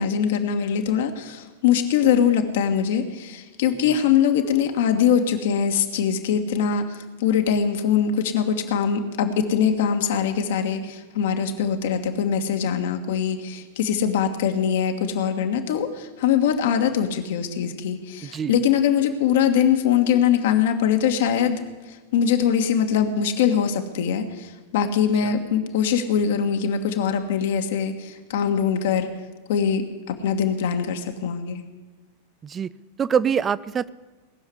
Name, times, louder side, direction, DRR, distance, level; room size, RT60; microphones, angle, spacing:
voice 1, 0.0-29.1 29.5-31.6, left 8 dB, 55° left, 6 dB, 1.5 m, -22 dB
voice 2, 18.2-18.6 32.4-32.7 33.0-33.9, right 7 dB, 20° right, 19 dB, 0.5 m, -24 dB
19.0 x 7.2 x 9.7 m, 1.2 s
figure-of-eight pair, 90°, 0 cm